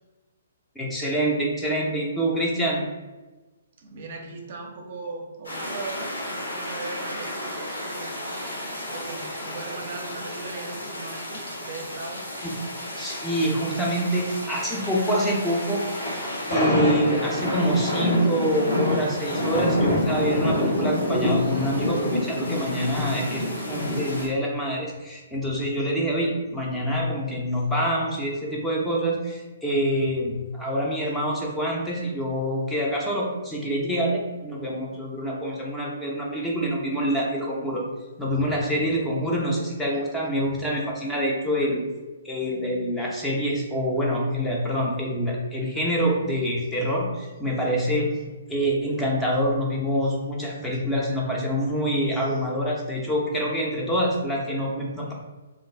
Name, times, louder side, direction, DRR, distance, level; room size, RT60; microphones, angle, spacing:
voice 1, 0.8-2.8 12.4-12.5 13.0-15.8 16.5-37.8 38.2-41.8 42.2-48.1 48.5-55.1, equal, 5° left, -3 dB, 0.5 m, -26 dB
voice 2, 3.8-6.1 6.4-8.1 8.9-12.2 13.2-13.3, right 3 dB, 45° right, 1 dB, 0.5 m, -38 dB
sound 1, 5.4-24.3, left 1 dB, 75° left, 1.1 m, -28 dB
2.4 x 2.2 x 3.3 m, 1.2 s
figure-of-eight pair, 125°, 0 cm